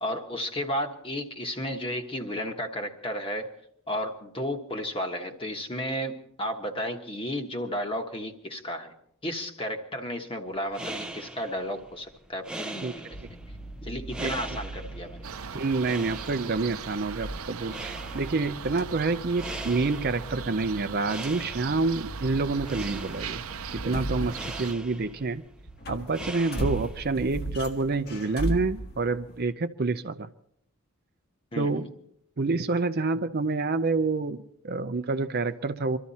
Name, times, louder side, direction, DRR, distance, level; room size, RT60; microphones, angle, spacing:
voice 1, 0.0-3.5 3.9-8.9 9.2-13.2 13.8-15.2 31.5-31.9, equal, 25° left, 4 dB, 1.4 m, -33 dB
sound 1, 10.5-27.1, right 2 dB, 5° right, 0.7 m, -42 dB
sound 2, 13.1-25.2 25.6-29.5, right 1 dB, 50° left, 1.6 m, -38 dB
sound 3, 15.2-24.7, right 8 dB, 90° right, 0.7 m, -40 dB
voice 2, 15.5-23.4 23.7-25.4 25.9-30.3 31.6-31.9 32.4-36.0, right 3 dB, 45° right, 10 dB, 0.6 m, -28 dB
24.0 x 13.5 x 4.2 m, 0.70 s
head